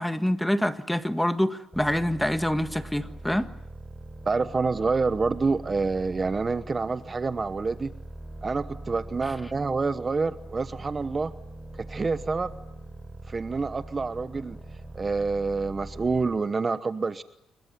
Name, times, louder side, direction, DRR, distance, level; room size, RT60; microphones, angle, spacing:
voice 1, 0.0-3.5, equal, 5° left, 10 dB, 1.6 m, -26 dB
sound 1, 1.7-16.4, right 2 dB, 10° right, 6.9 m, -42 dB
voice 2, 4.2-7.9 8.4-11.3 11.8-12.5 13.3-14.6 14.9-17.2, right 4 dB, 30° right, 13 dB, 1.0 m, -27 dB
29.0 x 22.5 x 9.3 m, 0.82 s
cardioid pair, 90°, 0 cm